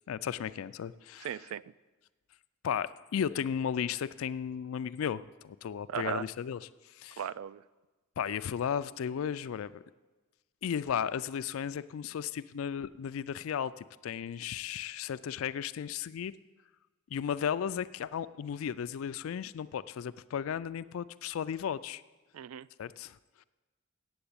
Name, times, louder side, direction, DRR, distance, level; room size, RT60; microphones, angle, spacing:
voice 1, 0.1-1.4 2.6-7.2 8.2-9.8 10.6-16.3 17.1-22.0 22.8-23.4, left 8 dB, 75° left, 14 dB, 0.3 m, -35 dB
voice 2, 1.2-1.6 5.9-6.2 7.2-7.6 22.3-22.7, right 9 dB, 85° right, 19 dB, 0.3 m, -36 dB
8.1 x 8.0 x 8.6 m, 1.2 s
head